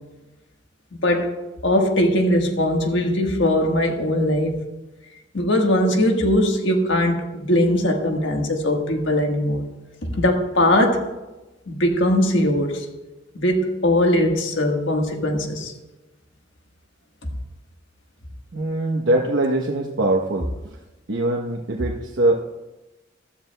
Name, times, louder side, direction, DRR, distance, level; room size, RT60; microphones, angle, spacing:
voice 1, 1.0-1.4 1.6-4.6 5.3-9.6 10.0-11.1 11.7-12.9 13.3-15.7, left 1 dB, 70° left, 3 dB, 1.4 m, -20 dB
voice 2, 18.5-20.5 21.1-22.4, right 2 dB, 75° right, 0 dB, 0.9 m, -22 dB
15.0 x 13.0 x 2.2 m, 1.1 s
head